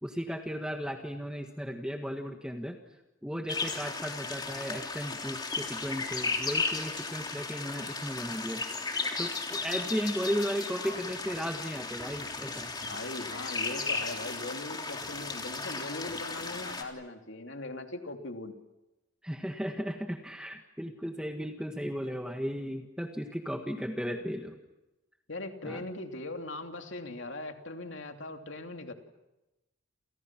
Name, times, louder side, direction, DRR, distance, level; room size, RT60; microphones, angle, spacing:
voice 1, 0.0-2.8 3.2-8.6 9.2-12.7 19.2-24.6 25.6-25.9, equal, 5° right, 3 dB, 1.7 m, -35 dB
sound 1, 3.5-16.8, left 4 dB, 20° left, 3.3 m, -35 dB
voice 2, 12.8-18.5 25.3-28.9, left 2 dB, 65° left, 4 dB, 2.9 m, -40 dB
29.0 x 29.0 x 6.1 m, 0.99 s
head